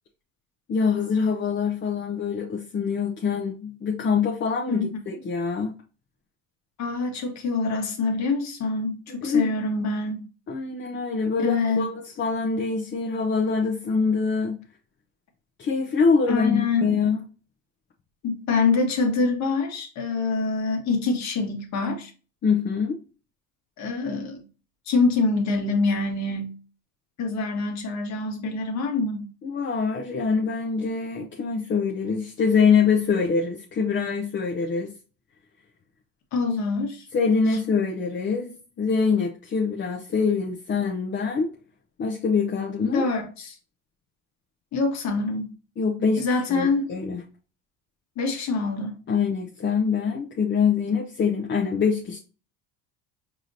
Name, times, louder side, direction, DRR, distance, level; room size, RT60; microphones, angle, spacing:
voice 1, 0.7-5.7 9.1-9.5 10.5-14.6 15.6-17.2 22.4-23.0 29.4-34.9 37.1-41.5 42.0-43.0 45.8-46.2 46.5-47.2 49.1-52.2, left 5 dB, 35° left, 0.8 m, -24 dB
voice 2, 6.8-10.2 11.4-11.9 16.3-16.9 18.2-22.1 23.8-24.4 24.9-26.5 27.2-29.3 36.3-37.1 42.8-43.6 44.7-45.5 46.2-47.0 48.2-49.0, left 3 dB, 55° left, 1.4 m, -25 dB
4.7 x 2.9 x 2.6 m
supercardioid pair, 90°, 33 cm